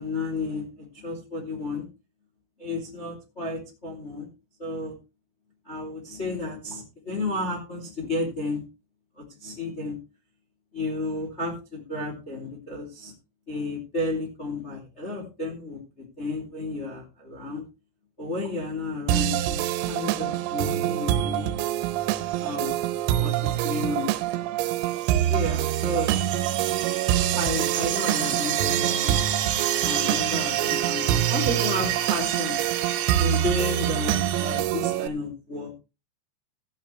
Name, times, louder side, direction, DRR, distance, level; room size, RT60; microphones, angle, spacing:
voice 1, 0.0-1.9 2.6-4.3 4.6-4.9 5.7-8.6 9.2-10.0 10.7-13.1 13.5-15.8 16.2-17.6 18.2-21.5 22.4-22.7 23.2-24.1 25.3-26.2 27.3-29.2 29.8-32.6 33.2-35.7, left 2 dB, 20° left, -1 dB, 2.2 m, -32 dB
sound 1, 19.1-35.1, right 13 dB, 90° right, 3.5 m, -26 dB
sound 2, 22.1-22.6 23.1-23.9 24.2-24.4 24.9-34.6, right 11 dB, 70° right, 3.6 m, -30 dB
15.5 x 9.3 x 3.2 m, 0.29 s
omnidirectional pair, 5.9 m